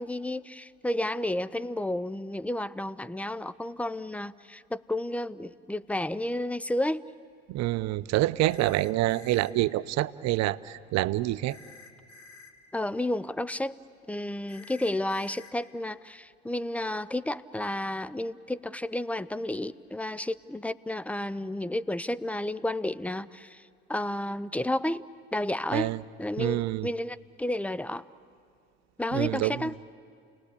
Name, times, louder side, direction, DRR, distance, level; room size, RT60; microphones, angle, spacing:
voice 1, 0.0-7.1 12.7-13.8 14.1-23.6 23.9-25.0 25.3-25.9 26.2-28.0 29.0-29.8, left 1 dB, 5° left, 17 dB, 0.5 m, -31 dB
voice 2, 7.5-11.6 25.7-26.0 26.4-26.9 29.1-29.7, right 16 dB, 55° right, 15 dB, 0.7 m, -27 dB
sound 1, 8.5-9.5 11.5-12.5 14.5-15.5, left 4 dB, 60° left, 2.2 m, -51 dB
29.5 x 19.0 x 8.4 m, 2.3 s
hypercardioid pair, 65°, 32 cm